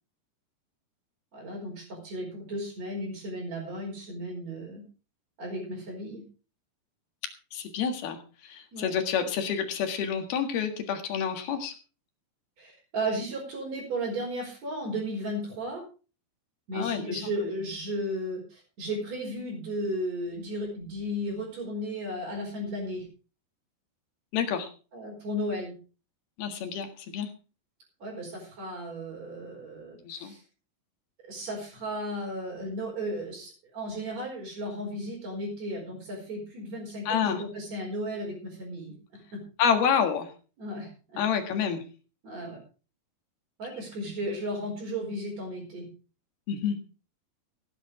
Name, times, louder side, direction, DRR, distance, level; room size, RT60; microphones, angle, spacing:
voice 1, 1.3-4.8 5.4-6.2 8.7-8.9 12.6-15.8 16.7-23.1 24.9-25.7 28.0-30.4 31.3-39.4 40.6-41.2 42.2-42.6 43.6-45.9, equal, 35° right, -5 dB, 5.7 m, -35 dB
voice 2, 7.5-11.7 16.7-17.2 24.3-24.7 26.4-27.3 30.0-30.3 37.1-37.4 39.6-40.3 41.2-41.8 46.5-46.8, left 7 dB, 60° left, 6 dB, 3.2 m, -28 dB
16.5 x 10.0 x 4.8 m, 0.36 s
omnidirectional pair, 5.5 m